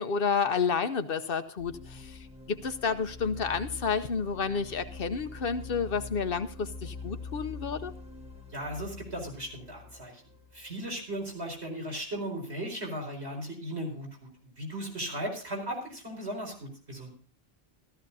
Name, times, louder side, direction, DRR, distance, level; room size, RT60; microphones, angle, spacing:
voice 1, 0.0-2.2 2.5-7.9, left 5 dB, 65° left, 10 dB, 1.0 m, -30 dB
sound 1, 1.6-11.4, left 3 dB, 5° right, 1.3 m, -45 dB
voice 2, 8.5-10.2 10.5-17.1, right 1 dB, 85° right, -1 dB, 5.0 m, -37 dB
15.0 x 14.0 x 2.7 m, 0.42 s
omnidirectional pair, 1.1 m